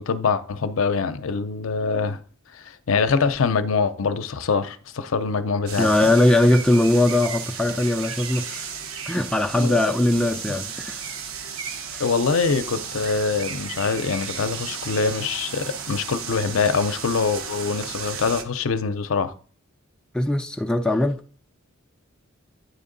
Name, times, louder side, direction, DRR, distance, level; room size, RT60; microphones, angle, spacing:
voice 1, 0.0-2.2 2.5-6.1 9.6-9.8 12.0-19.3, left 5 dB, 65° left, 0.6 m, -24 dB
sound 1, 5.7-18.4, right 6 dB, 70° right, 0.8 m, -34 dB
voice 2, 5.8-8.7 9.1-11.0 11.9-12.0 20.1-21.2, left 1 dB, 5° left, 0.3 m, -20 dB
9.2 x 3.6 x 3.9 m
head